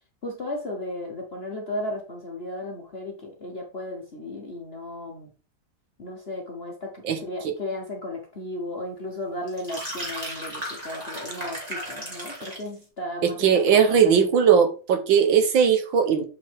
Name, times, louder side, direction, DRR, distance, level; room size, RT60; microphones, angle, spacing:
voice 1, 0.2-5.3 6.0-14.5, left 1 dB, 40° left, 1 dB, 1.0 m, -35 dB
sound 1, 9.5-12.7, equal, 20° right, 2.6 m, -35 dB
voice 2, 13.4-16.2, right 7 dB, 70° right, 7 dB, 1.6 m, -19 dB
6.8 x 5.5 x 3.5 m, 0.36 s
omnidirectional pair, 2.3 m